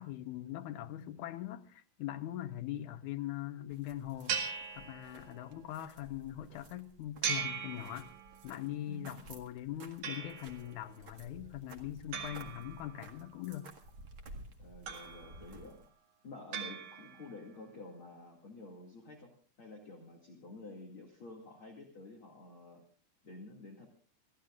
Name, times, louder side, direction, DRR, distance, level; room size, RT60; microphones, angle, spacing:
voice 1, 0.0-8.1 8.4-13.7, left 13 dB, 80° left, 1.8 m, -42 dB
sound 1, 3.7-15.9, right 2 dB, 45° right, 1.8 m, -54 dB
sound 2, 4.3-5.5 7.2-8.5 10.0-10.7 12.1-13.3 14.9-15.6 16.5-17.4, right 7 dB, 80° right, 4.1 m, -39 dB
voice 2, 8.9-9.3 14.6-15.9 16.2-19.3 19.6-22.8 23.2-23.9, left 2 dB, 40° left, 2.5 m, -50 dB
28.5 x 15.0 x 2.4 m
omnidirectional pair, 4.6 m